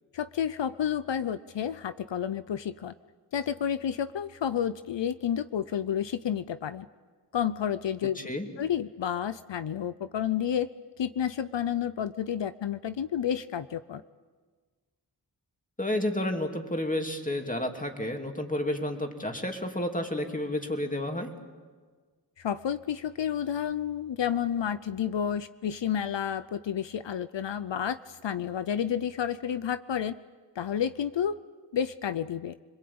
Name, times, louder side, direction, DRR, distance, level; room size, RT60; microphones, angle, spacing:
voice 1, 0.1-2.9 3.3-6.9 7.3-8.2 8.6-10.7 11.0-14.0 22.4-30.2 30.6-31.4 31.7-32.5, left 9 dB, 85° left, 14 dB, 0.7 m, -30 dB
voice 2, 8.2-8.5 15.8-21.3, left 1 dB, 20° left, 3 dB, 2.8 m, -31 dB
26.5 x 22.0 x 8.7 m, 1.5 s
wide cardioid pair, 65°, 43 cm